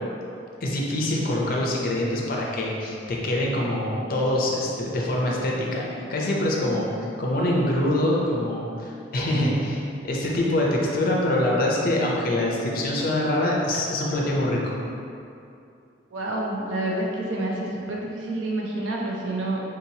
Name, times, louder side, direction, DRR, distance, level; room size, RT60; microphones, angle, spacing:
voice 1, 0.6-5.8 6.1-9.8 10.0-14.7, left 1 dB, 50° left, -3 dB, 0.5 m, -24 dB
voice 2, 16.1-19.6, right 2 dB, 80° right, -2 dB, 0.5 m, -28 dB
3.7 x 2.9 x 2.8 m, 2.6 s
head